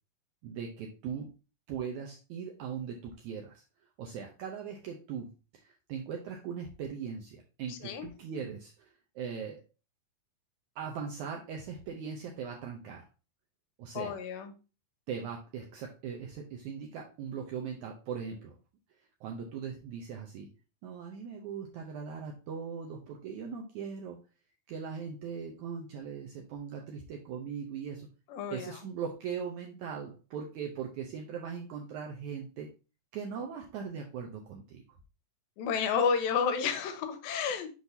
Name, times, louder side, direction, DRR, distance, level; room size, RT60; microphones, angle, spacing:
voice 1, 0.4-1.3 1.7-3.6 4.0-5.3 5.6-9.6 10.8-13.1 13.8-14.2 15.1-18.6 19.2-20.5 20.8-24.2 24.7-28.1 28.5-32.7 33.1-34.8, right 6 dB, 80° right, 0 dB, 1.7 m, -39 dB
voice 2, 7.7-8.1 13.9-14.5 28.3-28.8 35.6-37.7, left 6 dB, 90° left, 8 dB, 2.5 m, -31 dB
6.3 x 5.5 x 2.7 m, 0.32 s
omnidirectional pair, 4.2 m